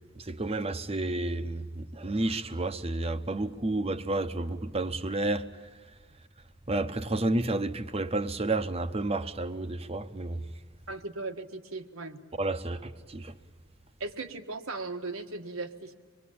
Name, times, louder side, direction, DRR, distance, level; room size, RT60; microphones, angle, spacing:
voice 1, 0.1-5.5 6.7-10.5 12.4-13.3, right 2 dB, 30° right, 1.0 m, -31 dB
voice 2, 10.9-12.2 14.0-15.9, right 3 dB, 80° right, 1.7 m, -37 dB
25.5 x 22.0 x 8.7 m
head